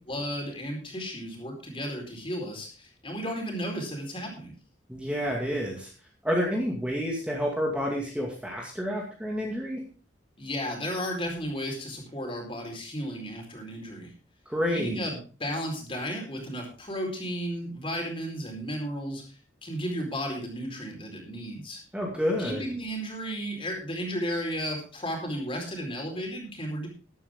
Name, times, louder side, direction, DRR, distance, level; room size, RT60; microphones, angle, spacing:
voice 1, 0.1-4.5 10.4-14.1 14.7-21.8 22.4-26.9, equal, 30° left, 1 dB, 4.5 m, -34 dB
voice 2, 4.9-5.9 6.2-9.8 14.5-15.0 21.9-22.6, equal, 5° right, -1 dB, 2.2 m, -29 dB
13.0 x 12.0 x 3.7 m, 0.36 s
head